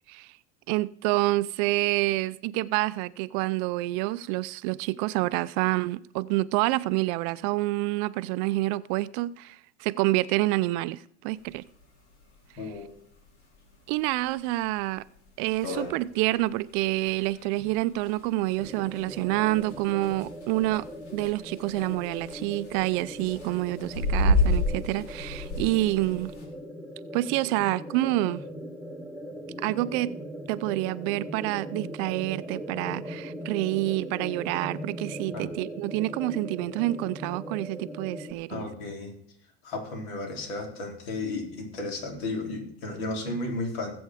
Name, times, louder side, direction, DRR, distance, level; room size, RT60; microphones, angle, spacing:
voice 1, 0.7-11.6 12.6-12.7 13.9-15.0 15.4-20.9 21.1-26.3 27.1-28.4 29.6-30.2 30.5-38.7, right 18 dB, 55° right, 0.5 m, -28 dB
sound 1, 11.4-11.5 11.8-11.9 12.2-12.3 12.9-13.1 13.6-13.7 14.2-14.3 14.6-14.7 15.2-15.3 15.4-26.4, left 1 dB, 85° left, 4.5 m, -30 dB
voice 2, 12.6-12.9 35.3-35.5 38.5-39.1 39.6-43.9, left 2 dB, 65° left, 4.4 m, -33 dB
sound 2, 18.6-38.3, equal, ahead, 0.7 m, -40 dB
19.5 x 8.0 x 4.9 m
supercardioid pair, 130°, 34 cm